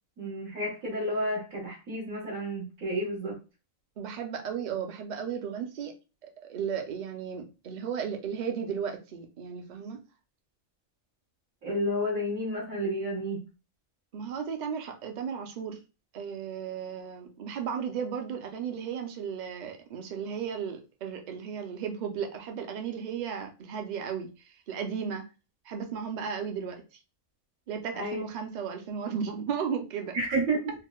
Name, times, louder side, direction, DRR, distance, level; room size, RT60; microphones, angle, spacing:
voice 1, 0.2-3.4 11.6-13.4 27.9-28.2 30.1-30.7, right 1 dB, 90° right, 1.9 m, -31 dB
voice 2, 4.0-5.9 6.2-10.0 14.1-15.8 16.1-25.2 25.6-27.0 27.7-30.2, right 7 dB, 50° right, 0.5 m, -35 dB
4.5 x 2.1 x 2.3 m
omnidirectional pair, 1.4 m